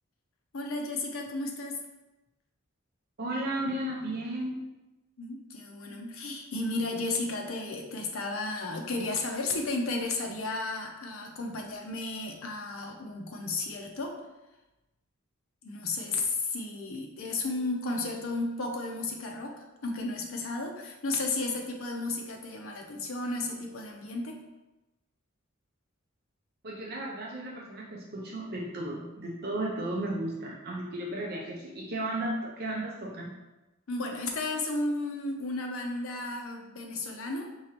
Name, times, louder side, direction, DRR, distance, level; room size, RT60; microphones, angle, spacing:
voice 1, 0.5-1.8 5.2-14.2 15.6-24.4 33.9-37.5, left 2 dB, 75° left, 2 dB, 0.7 m, -33 dB
voice 2, 3.2-4.6 26.6-33.3, right 1 dB, 50° right, -2 dB, 0.6 m, -34 dB
4.7 x 2.9 x 3.0 m, 1.0 s
head